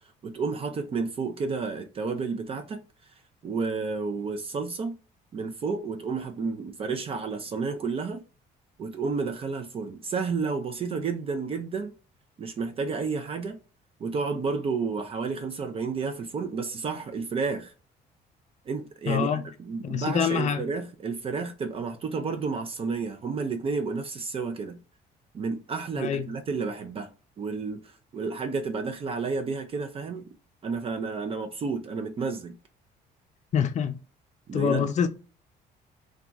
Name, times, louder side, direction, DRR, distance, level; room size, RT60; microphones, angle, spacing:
voice 1, 0.2-3.1 3.4-5.0 5.3-8.2 8.8-11.9 12.4-13.6 14.0-17.7 18.7-24.8 25.3-27.1 27.4-30.2 30.6-32.5 34.5-34.9, right 4 dB, 35° right, 0.4 m, -31 dB
voice 2, 19.1-19.4 19.8-20.6 25.9-26.3 33.5-34.0 34.5-35.1, left 8 dB, 45° left, 0.5 m, -25 dB
2.8 x 2.3 x 2.4 m
cardioid pair, 110°, 17 cm